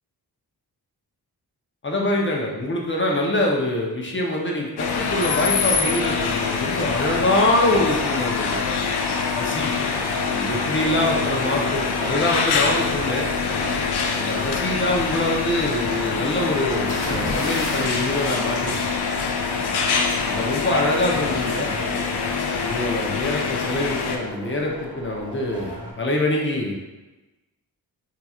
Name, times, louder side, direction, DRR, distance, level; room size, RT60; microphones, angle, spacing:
voice 1, 1.8-8.6 9.4-9.7 10.3-13.3 14.2-18.9 20.2-21.7 22.6-26.7, left 1 dB, 30° left, -1 dB, 0.7 m, -24 dB
sound 1, 4.8-24.2, left 5 dB, 75° left, 0.5 m, -25 dB
sound 2, 6.6-25.9, equal, 10° right, 1.2 m, -37 dB
sound 3, 16.9-19.6 20.9-21.2, left 1 dB, 60° left, 1.1 m, -32 dB
3.7 x 2.9 x 2.3 m, 1.1 s
wide cardioid pair, 90°, 40 cm